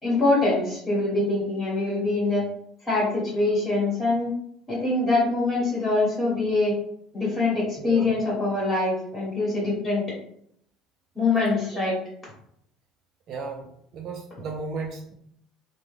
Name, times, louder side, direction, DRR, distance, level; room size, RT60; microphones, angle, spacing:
voice 1, 0.0-2.4 2.8-4.3 4.7-6.7 7.1-10.0 11.1-11.9, left 2 dB, 15° left, -6 dB, 1.4 m, -24 dB
voice 2, 7.8-8.1 13.3-15.1, right 4 dB, 45° right, 1 dB, 0.4 m, -35 dB
3.2 x 2.2 x 3.4 m, 0.70 s
cardioid pair, 135°, 0 cm